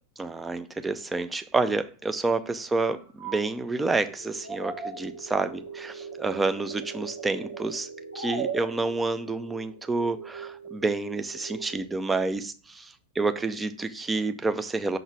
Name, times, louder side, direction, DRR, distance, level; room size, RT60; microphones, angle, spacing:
voice 1, 0.2-7.9 8.1-15.0, right 3 dB, 10° right, 0.6 m, -29 dB
sound 1, 2.7-3.5 4.0-4.2 4.4-5.2 5.7-7.8 8.1-9.1, right 5 dB, 55° right, 2.0 m, -37 dB
sound 2, 4.2-12.0, right 5 dB, 85° left, 0.8 m, -43 dB
6.1 x 3.9 x 6.0 m
figure-of-eight pair, 90°, 0 cm